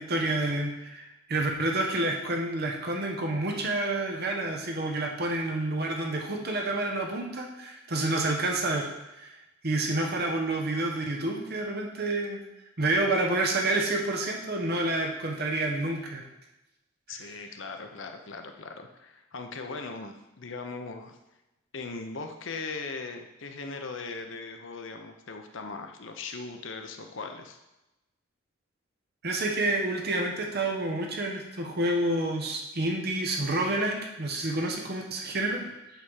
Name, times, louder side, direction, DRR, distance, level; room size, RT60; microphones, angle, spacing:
voice 1, 0.0-8.9 9.2-9.3 9.6-12.4 12.8-16.2 29.2-35.6, right 2 dB, 50° right, 1 dB, 1.2 m, -29 dB
voice 2, 17.1-21.2 21.7-27.6, left 4 dB, 65° left, 5 dB, 0.8 m, -39 dB
8.1 x 3.6 x 6.4 m, 0.96 s
head